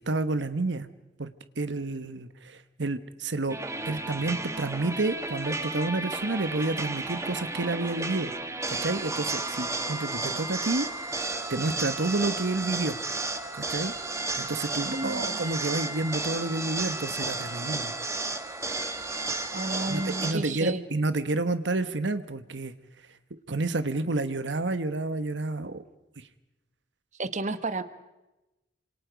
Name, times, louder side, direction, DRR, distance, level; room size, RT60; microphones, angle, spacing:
voice 1, 0.1-0.9 1.2-1.3 1.6-3.6 3.8-8.3 8.7-13.0 13.5-13.9 14.4-17.9 19.9-22.7 23.5-25.8 26.2-26.3, right 2 dB, 90° right, 12 dB, 1.2 m, -30 dB
sound 1, 3.5-20.3, right 2 dB, 15° right, 1.6 m, -33 dB
voice 2, 14.9-15.5 19.5-20.8 27.2-27.8, right 2 dB, 45° right, 12 dB, 1.1 m, -32 dB
28.0 x 26.5 x 5.2 m, 1.0 s
head